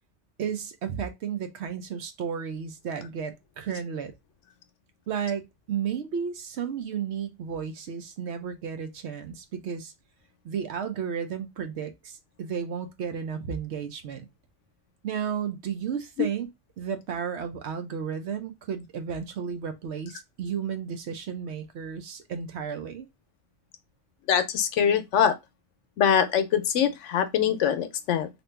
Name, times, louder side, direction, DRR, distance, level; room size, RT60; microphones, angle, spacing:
voice 1, 0.4-4.1 5.1-9.9 10.4-14.3 15.0-16.5 16.8-23.1, right 7 dB, 70° right, 0.9 m, -33 dB
voice 2, 24.3-25.3 26.0-28.3, left 8 dB, 80° left, 0.9 m, -23 dB
2.9 x 2.5 x 3.2 m
omnidirectional pair, 1.2 m